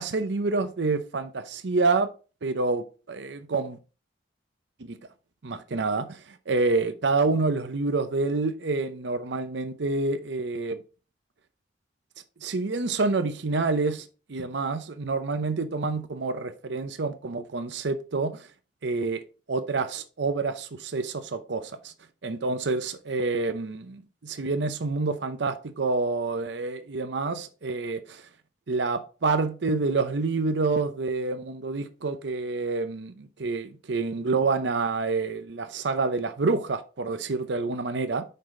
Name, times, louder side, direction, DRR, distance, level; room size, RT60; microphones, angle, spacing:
voice 1, 0.0-2.1 2.4-3.8 4.8-5.0 5.4-10.8 12.4-18.5 18.8-21.9 22.2-28.2 28.7-38.2, right 3 dB, 70° right, 0.7 m, -28 dB
5.7 x 5.5 x 3.7 m
head